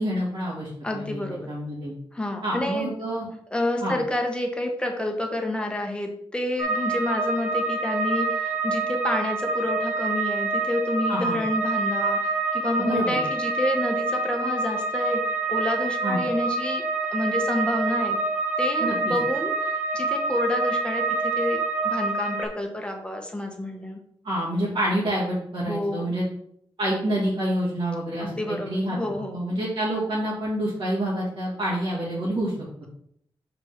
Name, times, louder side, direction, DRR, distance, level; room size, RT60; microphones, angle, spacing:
voice 1, 0.0-1.2 1.5-1.9 2.4-3.3 3.8-4.0 11.1-11.4 12.8-13.2 16.0-16.2 18.8-19.2 24.2-26.2 26.8-29.0 29.3-32.5, right 1 dB, 50° right, -7 dB, 2.7 m, -27 dB
voice 2, 0.8-1.5 2.1-2.9 3.5-15.2 15.5-16.8 17.1-18.2 18.6-24.0 25.7-26.1 28.2-29.4, left 1 dB, 10° left, 2 dB, 1.4 m, -29 dB
sound 1, 6.6-22.5, right 3 dB, 15° right, 2.0 m, -26 dB
5.3 x 4.5 x 5.9 m, 0.69 s
wide cardioid pair, 95°, 10 cm